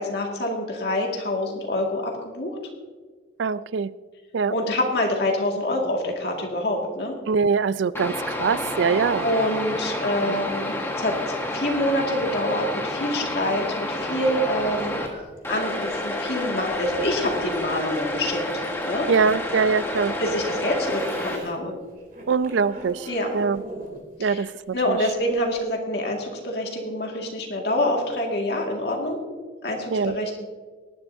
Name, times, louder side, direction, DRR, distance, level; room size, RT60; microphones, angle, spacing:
voice 1, 0.0-2.5 4.5-7.2 9.2-15.0 15.5-19.1 20.2-21.8 23.1-23.3 24.2-24.5 24.7-29.2 29.6-30.4, left 1 dB, 60° left, 0 dB, 2.0 m, -26 dB
voice 2, 3.4-3.9 4.3-4.5 7.3-8.1 8.4-9.2 19.1-20.1 22.3-23.1 23.3-23.6 24.2-25.0 29.9-30.1, right 5 dB, 80° right, 17 dB, 0.4 m, -23 dB
sound 1, 7.9-15.1 15.4-21.4, left 1 dB, 15° left, 1.4 m, -29 dB
sound 2, 13.4-21.5 21.8-25.6, right 1 dB, 45° right, 3.2 m, -42 dB
19.0 x 11.0 x 2.7 m, 1.5 s
head